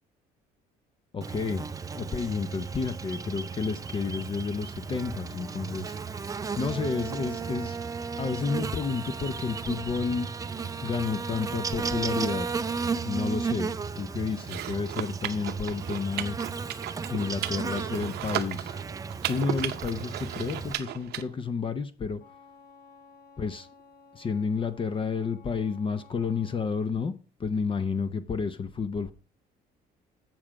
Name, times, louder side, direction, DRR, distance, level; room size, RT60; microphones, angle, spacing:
voice 1, 1.1-1.7 1.9-6.0 6.6-7.8 8.2-10.3 10.8-12.5 13.0-16.4 17.1-18.8 19.3-22.2 23.4-23.7 24.1-27.1 27.4-29.1, left 5 dB, 30° left, 0.7 m, -31 dB
Buzz, 1.2-20.7, right 5 dB, 20° right, 0.5 m, -34 dB
sound 1, 14.4-21.2, right 13 dB, 75° right, 0.7 m, -35 dB
Wind instrument woodwind instrument, 22.2-26.8, left 4 dB, 60° left, 1.7 m, -55 dB
7.5 x 7.1 x 4.8 m
cardioid pair, 110°, 17 cm